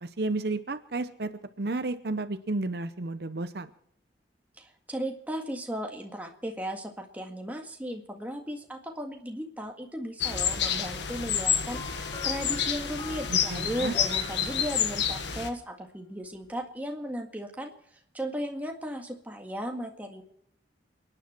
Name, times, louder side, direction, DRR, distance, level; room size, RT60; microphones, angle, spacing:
voice 1, 0.0-1.3 1.6-3.7 13.3-13.9, right 2 dB, 60° right, 10 dB, 0.7 m, -32 dB
voice 2, 4.6-17.7 18.1-20.2, equal, 10° right, 2 dB, 1.8 m, -36 dB
sound 1, 10.2-15.5, left 7 dB, 80° left, 1.6 m, -29 dB
sound 2, 11.7-15.3 16.3-16.5, left 5 dB, 25° left, 1.0 m, -46 dB
29.5 x 10.0 x 4.4 m, 0.71 s
head